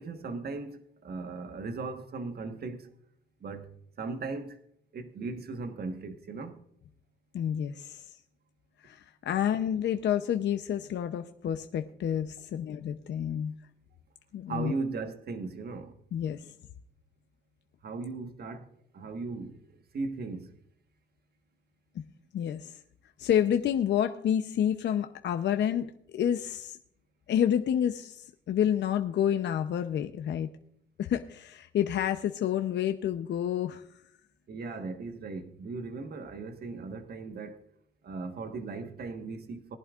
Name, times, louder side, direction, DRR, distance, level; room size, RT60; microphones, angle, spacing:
voice 1, 0.0-2.9 3.4-4.6 4.9-6.6 14.5-16.0 17.8-19.6 19.9-20.5 34.5-37.6 38.0-39.8, right 3 dB, 50° right, 1.4 m, -37 dB
voice 2, 7.3-8.1 8.8-13.5 14.3-14.7 16.1-16.5 21.9-22.0 22.3-22.8 23.2-26.8 27.3-30.5 31.0-33.9, left 9 dB, 60° left, 0.7 m, -29 dB
19.5 x 11.0 x 2.5 m
cardioid pair, 90°, 20 cm